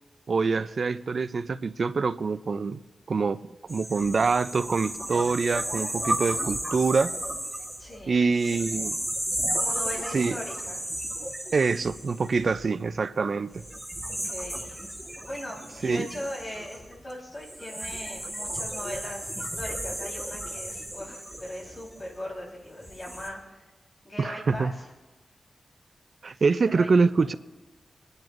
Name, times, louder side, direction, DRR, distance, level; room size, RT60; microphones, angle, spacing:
voice 1, 0.3-2.8 3.1-3.4 3.7-7.1 8.1-9.0 10.1-10.4 11.5-13.6 15.8-16.1 24.2-24.7 26.2-27.3, right 4 dB, 55° right, 0.4 m, -25 dB
sound 1, 3.7-12.9 13.5-22.3 22.8-23.3, right 1 dB, 5° right, 1.4 m, -34 dB
voice 2, 7.8-8.2 9.5-10.9 14.1-14.8 15.2-23.6 24.0-24.9 26.6-26.9, left 1 dB, 20° left, 4.0 m, -39 dB
28.0 x 10.5 x 2.6 m
wide cardioid pair, 115°, 0 cm